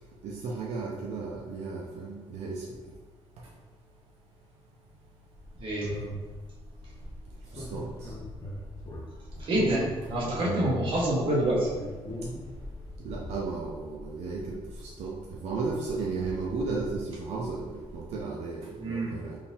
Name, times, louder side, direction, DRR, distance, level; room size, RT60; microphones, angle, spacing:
voice 1, 0.2-2.6 7.5-7.8 13.0-14.6 15.0-15.1 15.4-19.4, right 4 dB, 90° right, -3 dB, 0.5 m, -34 dB
sound 1, 5.3-18.2, left 1 dB, 30° left, 0.7 m, -41 dB
voice 2, 9.4-11.7 18.8-19.1, right 1 dB, 55° right, -5 dB, 0.9 m, -27 dB
3.7 x 2.7 x 2.7 m, 1.3 s
cardioid pair, 165°, 11 cm